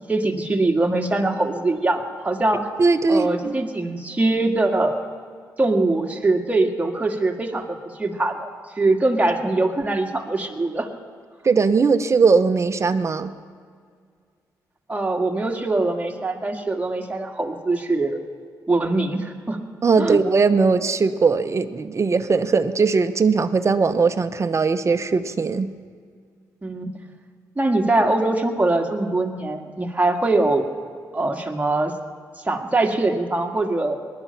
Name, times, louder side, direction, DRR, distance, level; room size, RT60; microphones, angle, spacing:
voice 1, 0.1-2.7 3.1-5.0 5.6-8.5 8.8-10.9 14.9-18.2 18.7-19.6 20.0-20.2 26.6-26.9 27.6-30.7 31.1-31.9 32.4-34.0, right 2 dB, 20° right, 2 dB, 1.9 m, -22 dB
voice 2, 2.8-3.5 11.4-13.3 19.8-25.7, right 4 dB, 40° right, 10 dB, 0.8 m, -19 dB
19.5 x 11.5 x 5.7 m, 2.1 s
supercardioid pair, 60°, 7 cm